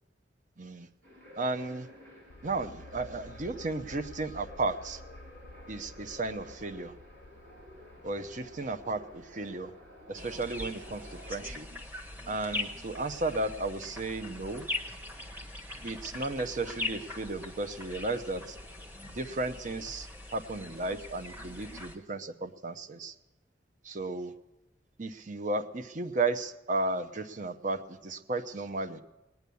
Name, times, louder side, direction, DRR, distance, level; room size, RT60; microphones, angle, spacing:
voice 1, 0.6-0.9 1.4-1.9 2.4-5.0 5.7-6.9 8.0-9.7 10.1-11.7 12.3-14.7 15.8-18.6 19.0-23.1 23.8-24.3 25.0-29.0, right 2 dB, 45° right, 9 dB, 0.7 m, -34 dB
sound 1, 1.0-11.5, equal, 70° right, 5.5 m, -52 dB
sound 2, 2.3-13.7 14.0-14.1, left 1 dB, 80° left, 0.6 m, -53 dB
sound 3, 10.2-22.0, left 2 dB, 10° right, 1.1 m, -41 dB
19.5 x 9.3 x 7.0 m, 1.0 s
head